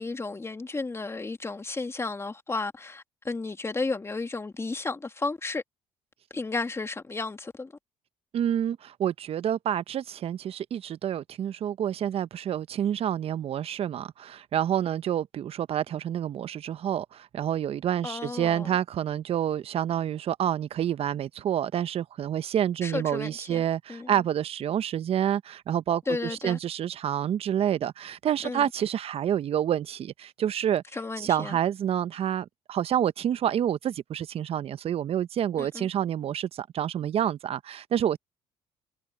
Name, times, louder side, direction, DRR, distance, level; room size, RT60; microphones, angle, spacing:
voice 1, 0.0-5.6 6.3-7.7 18.0-18.8 22.8-23.6 23.9-24.2 26.1-26.6 28.4-28.7 30.9-31.6 35.6-35.9, left 3 dB, 20° left, 2.7 m, -33 dB
voice 2, 8.3-26.0 26.4-30.8 31.2-38.2, right 10 dB, 55° right, 1.0 m, -28 dB
supercardioid pair, 65°, 12 cm